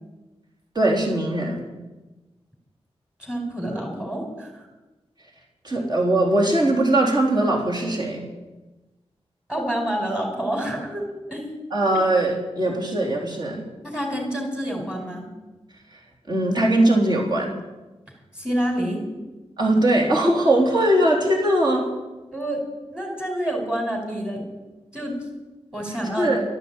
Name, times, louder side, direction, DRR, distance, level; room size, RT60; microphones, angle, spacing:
voice 1, 0.8-1.7 5.6-8.3 11.7-13.6 15.9-16.0 16.3-17.5 19.6-21.9 26.2-26.4, right 1 dB, 40° right, -2 dB, 3.8 m, -20 dB
voice 2, 3.2-4.7 9.5-11.5 13.8-15.3 18.3-19.0 22.3-22.6 22.9-24.4 24.9-25.1 25.7-26.3, right 1 dB, 10° right, 2 dB, 5.0 m, -28 dB
12.5 x 11.0 x 9.0 m, 1.1 s
wide cardioid pair, 95°, 11 cm